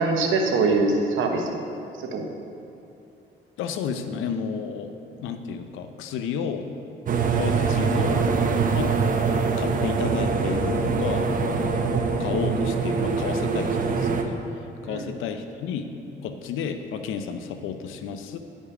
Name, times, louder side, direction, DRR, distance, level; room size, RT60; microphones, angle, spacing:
voice 1, 0.0-1.6 2.0-2.3 14.8-15.1, right 3 dB, 80° right, 3 dB, 1.0 m, -23 dB
voice 2, 3.6-4.9 5.2-6.7 7.4-8.3 8.7-9.0 9.6-11.9 12.2-14.3 14.8-15.9 16.2-18.4, left 6 dB, 90° left, 8 dB, 0.6 m, -31 dB
sound 1, 7.1-14.2, right 5 dB, 45° right, 0.7 m, -24 dB
9.8 x 5.4 x 4.8 m, 2.6 s
cardioid pair, 90°, 20 cm